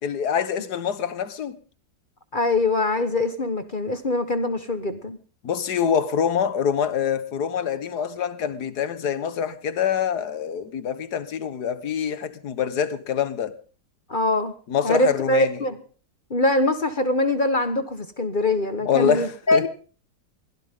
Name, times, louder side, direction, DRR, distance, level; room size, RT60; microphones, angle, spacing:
voice 1, 0.0-1.6 5.4-13.6 14.7-15.6 18.9-19.7, left 8 dB, 60° left, 1.8 m, -25 dB
voice 2, 2.3-5.2 14.1-14.5 14.8-15.8 16.3-19.7, left 2 dB, 30° left, 1.3 m, -23 dB
23.0 x 16.5 x 3.7 m
omnidirectional pair, 1.9 m